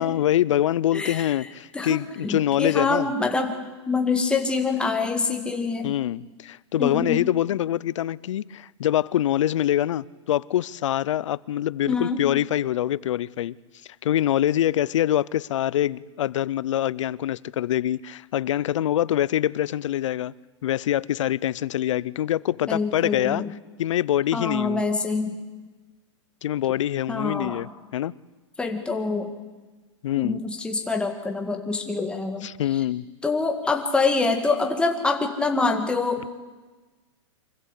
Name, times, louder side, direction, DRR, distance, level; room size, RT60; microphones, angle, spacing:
voice 1, 0.0-3.1 5.8-13.6 14.0-20.3 20.6-23.4 23.8-24.8 26.4-27.7 27.9-28.1 30.0-30.4 32.4-33.0, left 12 dB, 75° left, 0.6 m, -24 dB
voice 2, 0.9-1.3 1.7-3.5 3.9-6.0 6.8-7.3 11.9-12.3 22.7-23.5 24.3-25.4 27.1-27.7 28.6-29.3 30.2-32.8 33.2-36.3, left 3 dB, 5° left, 1.9 m, -25 dB
24.5 x 15.5 x 8.3 m
hypercardioid pair, 145°, 16 cm